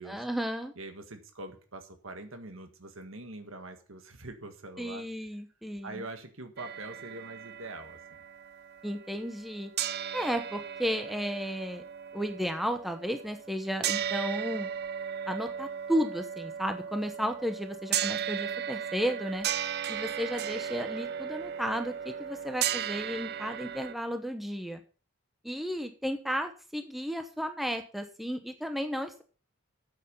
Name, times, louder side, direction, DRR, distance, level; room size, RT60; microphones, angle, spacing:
voice 1, 0.1-0.7 4.8-6.0 8.8-9.7 10.1-11.8 12.1-14.7 15.3-19.5 19.9-24.8 25.4-29.2, equal, ahead, 6 dB, 1.0 m, -33 dB
voice 2, 0.7-5.0 5.8-8.0, right 2 dB, 65° right, 6 dB, 1.7 m, -43 dB
sound 1, 6.6-9.5 9.8-23.9, right 9 dB, 50° right, 0.6 m, -36 dB
9.3 x 8.0 x 6.8 m, 0.38 s
head